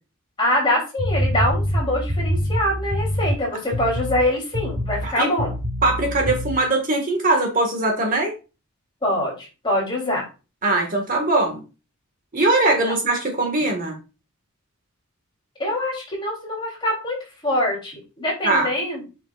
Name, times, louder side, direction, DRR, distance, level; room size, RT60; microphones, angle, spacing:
voice 1, 0.4-5.5 9.0-10.3 12.8-12.9 15.6-19.0, left 1 dB, 25° left, -3 dB, 3.3 m, -24 dB
sound 1, 1.0-3.4 3.7-4.2 4.5-5.1 5.4-6.5, equal, 85° right, 2.5 m, -25 dB
voice 2, 5.8-8.3 10.6-11.6 12.3-14.0 18.4-18.7, right 2 dB, 40° right, 2 dB, 1.7 m, -21 dB
7.8 x 5.9 x 2.5 m, 0.30 s
head